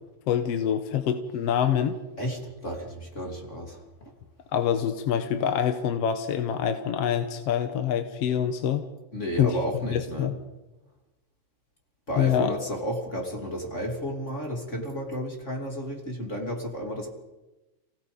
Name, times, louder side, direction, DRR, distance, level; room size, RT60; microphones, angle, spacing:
voice 1, 0.3-1.9 4.5-8.9 9.4-9.6 9.9-10.4 12.2-12.5, left 9 dB, 65° left, 8 dB, 1.9 m, -25 dB
voice 2, 2.2-4.1 9.1-10.3 12.1-17.1, equal, 25° left, 1 dB, 2.9 m, -32 dB
29.0 x 17.5 x 5.2 m, 1.1 s
omnidirectional pair, 3.4 m